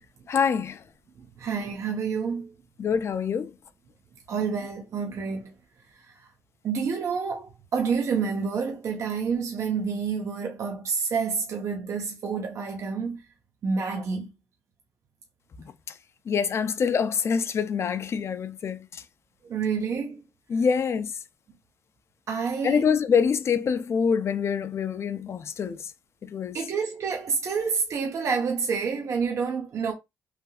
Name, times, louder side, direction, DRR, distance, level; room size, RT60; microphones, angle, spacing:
voice 1, 0.3-0.8 2.8-3.5 16.3-19.0 20.5-21.1 22.6-25.9 26.2-26.6, left 6 dB, 50° left, 0.4 m, -25 dB
voice 2, 1.2-2.5 4.3-5.5 6.0-6.2 6.6-13.2 13.6-14.3 19.5-20.2 22.3-22.9 26.5-29.9, right 5 dB, 60° right, 0.8 m, -28 dB
3.3 x 2.7 x 2.3 m
cardioid pair, 75°, 6 cm